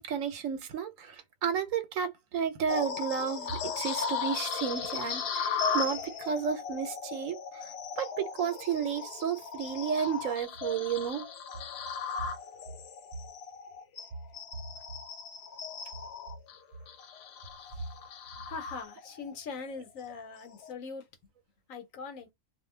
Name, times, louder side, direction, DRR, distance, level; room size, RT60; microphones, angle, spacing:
voice 1, 0.0-11.3, right 7 dB, 80° right, 1.1 m, -32 dB
sound 1, 2.7-19.3 19.8-20.0 20.5-20.7, left 6 dB, 60° left, 0.7 m, -37 dB
voice 2, 18.4-21.1 21.7-22.3, left 4 dB, 85° left, 1.2 m, -41 dB
2.6 x 2.2 x 3.2 m
omnidirectional pair, 1.4 m